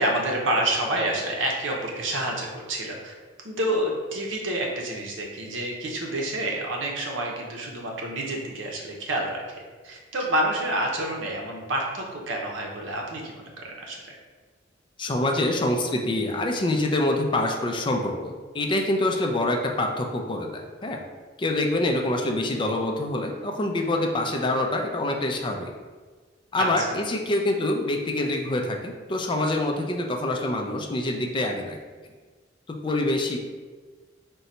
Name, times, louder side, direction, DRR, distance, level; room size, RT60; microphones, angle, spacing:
voice 1, 0.0-3.1 3.4-14.1 26.6-27.0, right 1 dB, 85° right, 0 dB, 0.8 m, -28 dB
voice 2, 15.0-21.0 21.4-25.7 26.5-31.8 32.8-33.4, left 1 dB, 25° left, 2 dB, 0.4 m, -26 dB
3.8 x 2.2 x 4.2 m, 1.4 s
head